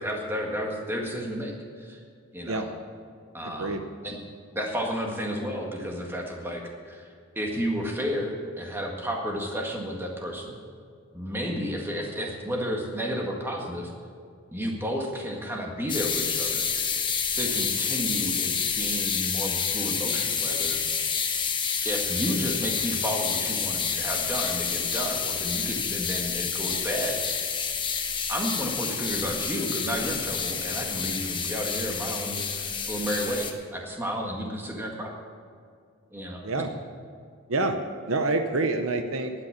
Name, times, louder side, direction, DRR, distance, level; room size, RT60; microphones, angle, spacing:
voice 1, 0.0-2.0 2.3-2.7 3.3-4.2 4.5-7.1 7.4-10.6 11.1-13.9 14.5-16.7 17.3-20.8 21.8-27.2 28.3-35.1 36.1-36.4, equal, 10° right, 0 dB, 1.8 m, -32 dB
voice 2, 3.4-3.8 36.4-36.7 37.5-37.8 38.1-39.3, right 2 dB, 65° right, 7 dB, 0.9 m, -27 dB
sound 1, 15.9-33.5, left 6 dB, 20° left, 1.1 m, -29 dB
12.0 x 9.5 x 8.6 m, 2.2 s
head